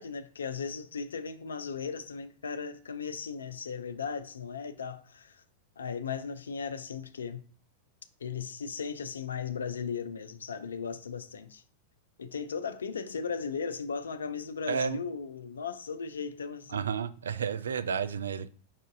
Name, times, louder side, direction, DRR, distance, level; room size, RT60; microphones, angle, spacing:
voice 1, 0.0-5.4 5.8-7.4 8.2-11.6 12.2-16.9, left 6 dB, 70° left, 0.4 m, -37 dB
voice 2, 14.7-15.0 16.7-18.5, right 6 dB, 70° right, 0.3 m, -31 dB
5.5 x 2.6 x 3.8 m
figure-of-eight pair, 90°, 0 cm